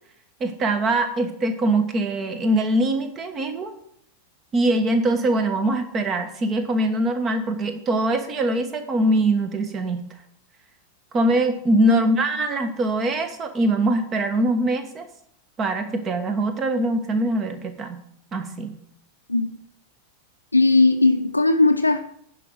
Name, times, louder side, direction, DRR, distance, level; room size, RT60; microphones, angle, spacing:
voice 1, 0.4-3.7 4.5-10.0 11.1-15.1 15.6-18.0 18.3-18.7, right 1 dB, 25° right, 8 dB, 1.4 m, -22 dB
voice 2, 20.5-22.0, left 3 dB, 85° left, 3 dB, 0.7 m, -18 dB
10.5 x 5.4 x 6.3 m, 0.69 s
figure-of-eight pair, 90°, 0 cm